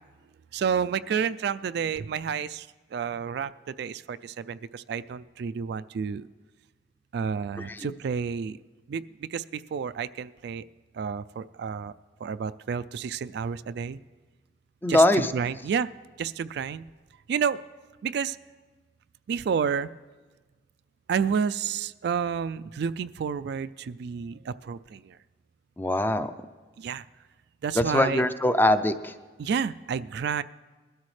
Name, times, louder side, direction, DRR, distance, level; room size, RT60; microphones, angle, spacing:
voice 1, 0.5-6.3 7.1-8.6 8.9-10.6 10.9-11.9 12.2-14.0 14.9-15.0 15.3-15.9 16.2-16.8 17.3-17.6 18.0-18.4 19.3-19.9 21.1-25.2 26.8-27.0 27.6-28.3 29.4-30.4, right 6 dB, 65° right, 14 dB, 0.3 m, -30 dB
voice 2, 7.6-7.9 14.8-15.3 25.8-26.3 27.8-29.1, left 1 dB, 10° left, 11 dB, 0.5 m, -22 dB
20.5 x 12.5 x 3.2 m, 1.4 s
head